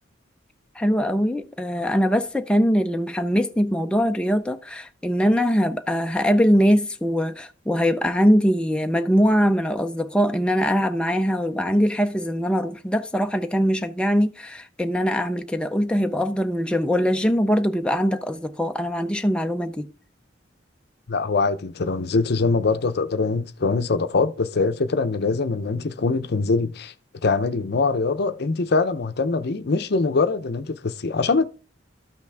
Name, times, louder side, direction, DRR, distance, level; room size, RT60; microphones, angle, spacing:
voice 1, 0.8-19.9, equal, 5° left, 0.4 m, -22 dB
voice 2, 21.1-26.9 27.2-31.5, left 4 dB, 60° left, 0.6 m, -23 dB
12.5 x 5.8 x 3.4 m
head